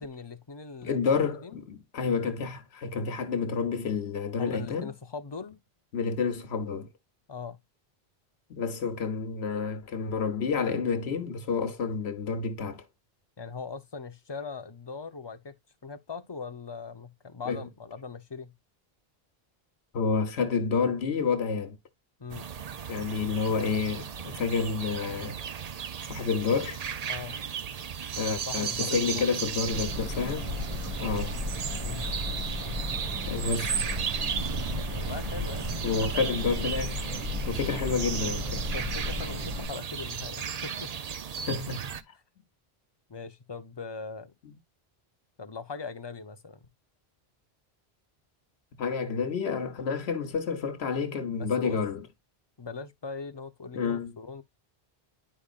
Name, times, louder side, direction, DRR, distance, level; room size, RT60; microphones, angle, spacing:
voice 1, 0.0-1.6 4.4-5.6 7.3-7.6 13.4-15.5 15.8-18.6 22.2-22.5 27.1-27.4 28.5-29.2 29.5-29.6 31.8-32.1 34.8-36.3 38.5-40.9 43.1-44.3 45.4-46.7 49.7-49.9 51.4-51.8 52.6-54.4, left 4 dB, 30° left, 0.7 m, -40 dB
voice 2, 0.8-4.9 5.9-6.9 8.5-12.9 17.5-17.6 19.9-21.8 22.9-25.4 26.0-26.8 28.2-30.5 31.0-31.3 33.2-33.8 35.8-37.1 37.5-38.6 41.5-42.0 48.8-52.0 53.7-54.1, left 5 dB, 85° left, 1.2 m, -29 dB
sound 1, 22.3-42.0, right 7 dB, 45° right, 0.6 m, -35 dB
sound 2, 29.7-39.7, left 1 dB, 30° right, 1.6 m, -34 dB
10.0 x 5.1 x 2.4 m
omnidirectional pair, 1.1 m